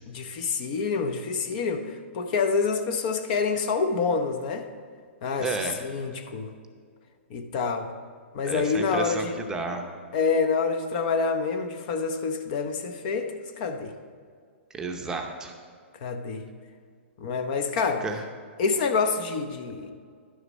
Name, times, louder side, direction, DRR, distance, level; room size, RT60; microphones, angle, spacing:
voice 1, 0.1-4.7 5.2-6.5 7.3-7.9 8.3-9.4 10.1-13.9 16.0-16.4 17.2-18.0 18.6-19.9, left 5 dB, 40° left, 7 dB, 0.7 m, -27 dB
voice 2, 5.4-5.8 8.5-9.8 14.7-15.5 18.0-18.2, right 3 dB, 10° right, 2 dB, 0.7 m, -32 dB
11.0 x 6.4 x 5.3 m, 2.1 s
hypercardioid pair, 155°, 7 cm